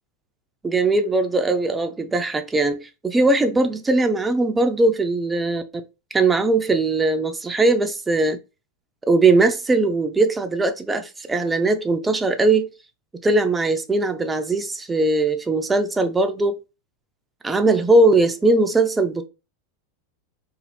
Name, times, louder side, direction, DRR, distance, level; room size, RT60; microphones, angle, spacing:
voice 1, 0.6-5.6 6.1-8.4 9.1-12.7 13.2-16.6 17.4-19.3, right 2 dB, 15° right, 0.4 m, -20 dB
2.6 x 2.5 x 3.2 m
figure-of-eight pair, 85°, 0 cm